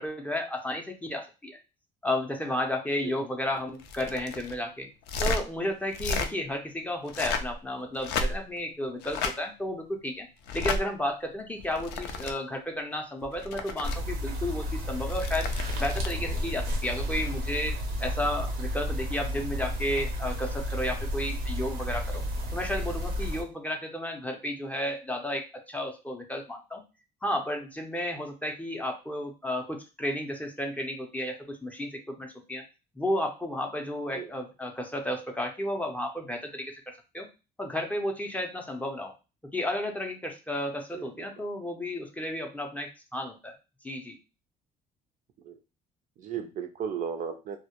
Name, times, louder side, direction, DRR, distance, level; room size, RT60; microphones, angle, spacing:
voice 1, 0.0-1.6 2.0-4.9 5.2-10.3 10.5-15.5 15.8-17.7 18.0-22.2 22.5-26.8 27.2-32.6 33.0-36.8 37.1-37.3 37.6-39.1 39.5-43.5 43.8-44.2, left 1 dB, 10° left, 3 dB, 0.4 m, -32 dB
sound 1, 3.8-4.6 5.0-5.4 5.9-6.3 7.0-7.6 8.0-8.6 9.0-9.4 10.4-10.8 11.6-12.3 13.2-14.0 15.0-16.2 18.1-18.2, left 3 dB, 85° left, 0.4 m, -32 dB
sound 2, 13.8-23.4, equal, 90° right, 0.7 m, -32 dB
voice 2, 40.9-41.3 45.4-45.6 46.2-47.6, right 7 dB, 50° right, 8 dB, 0.4 m, -35 dB
2.1 x 2.1 x 2.8 m, 0.30 s
cardioid pair, 110°, 17 cm